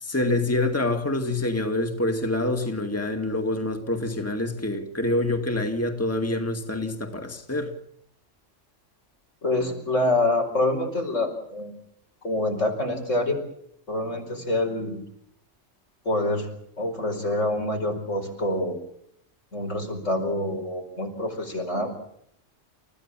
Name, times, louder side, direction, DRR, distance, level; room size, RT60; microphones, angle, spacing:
voice 1, 0.0-7.7, left 2 dB, 10° left, 2.2 m, -26 dB
voice 2, 9.4-11.7 12.2-13.4 13.9-15.0 16.1-16.5 16.8-18.8 19.5-21.9, left 2 dB, 80° left, 5.4 m, -26 dB
29.5 x 15.0 x 7.5 m
omnidirectional pair, 1.3 m